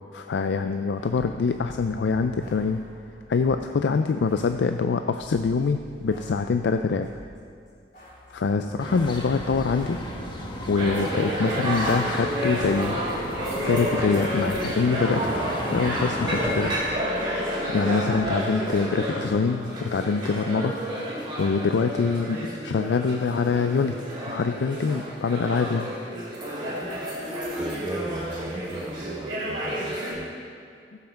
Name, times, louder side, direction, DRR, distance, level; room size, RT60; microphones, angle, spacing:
voice 1, 0.1-2.8 3.3-7.1 8.3-10.0 10.7-13.0 13.6-16.7 17.7-20.7 21.4-24.0 24.3-25.9, left 4 dB, 80° left, 7 dB, 0.4 m, -24 dB
sound 1, 0.9-3.7 4.2-7.4 7.7-14.8 15.0-18.2, equal, 50° left, 3.5 m, -48 dB
voice 2, 8.5-9.0 27.6-30.3, right 1 dB, 10° right, 4 dB, 0.3 m, -38 dB
sound 2, 8.8-16.7, equal, 25° left, 1.2 m, -34 dB
sound 3, 10.8-30.1, equal, 30° right, 2.6 m, -30 dB
15.0 x 5.8 x 6.5 m, 2.3 s
head